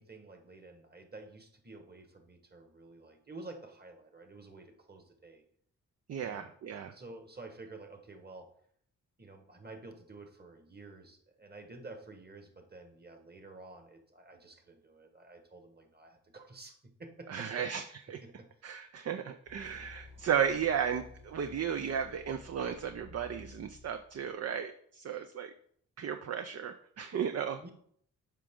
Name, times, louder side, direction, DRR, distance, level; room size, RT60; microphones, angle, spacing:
voice 1, 0.0-5.4 6.2-8.5 9.2-17.6 18.2-18.5 25.1-25.3 27.5-27.7, right 2 dB, 30° right, 5 dB, 1.5 m, -50 dB
voice 2, 6.1-6.9 17.3-18.2 18.6-25.5 26.0-27.6, right 8 dB, 45° right, 8 dB, 0.6 m, -34 dB
sound 1, 19.4-24.4, left 3 dB, 90° right, 2.5 m, -54 dB
7.5 x 4.9 x 3.7 m, 0.65 s
supercardioid pair, 50°, 34 cm